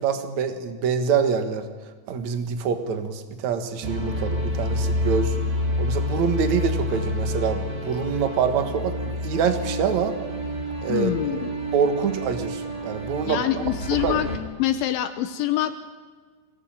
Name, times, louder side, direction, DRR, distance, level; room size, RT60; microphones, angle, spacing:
voice 1, 0.0-1.6 2.1-5.4 5.8-10.1 10.8-11.1 11.7-13.6 14.0-14.2, right 6 dB, 75° right, 8 dB, 1.7 m, -25 dB
sound 1, 3.8-14.4, left 1 dB, 25° right, 2.5 m, -28 dB
voice 2, 10.9-11.5 13.3-14.3 14.6-15.8, left 12 dB, 75° left, 10 dB, 3.0 m, -25 dB
24.5 x 18.0 x 9.0 m, 1.5 s
omnidirectional pair, 5.9 m